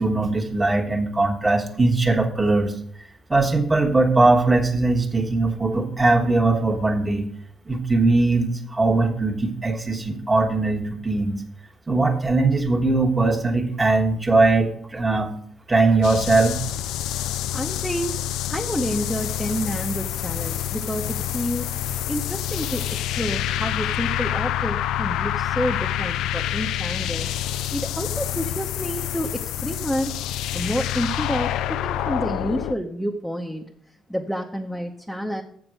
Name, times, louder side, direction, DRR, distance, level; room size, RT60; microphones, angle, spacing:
voice 1, 0.0-2.7 3.3-7.3 7.7-11.4 11.9-15.3 15.7-16.6, right 3 dB, 20° right, 2 dB, 1.4 m, -20 dB
sound 1, 16.0-32.8, left 11 dB, 85° left, 0.3 m, -27 dB
voice 2, 17.5-18.2 18.5-21.7 22.1-22.8 23.2-27.3 27.7-30.1 30.5-33.6 34.1-35.4, equal, ahead, 0 dB, 0.9 m, -29 dB
7.7 x 6.2 x 6.3 m, 0.63 s
supercardioid pair, 70°, 0 cm